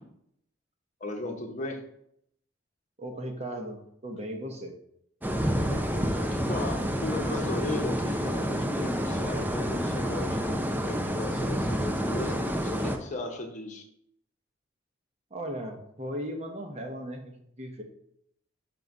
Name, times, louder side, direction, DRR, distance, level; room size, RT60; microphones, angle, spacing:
voice 1, 1.0-1.8 5.7-13.9, left 2 dB, 40° left, 3 dB, 0.9 m, -37 dB
voice 2, 3.0-4.7 15.3-17.8, equal, 35° right, 3 dB, 1.0 m, -37 dB
sound 1, 5.2-13.0, equal, 10° right, 0.6 m, -29 dB
5.3 x 3.9 x 5.9 m, 0.74 s
head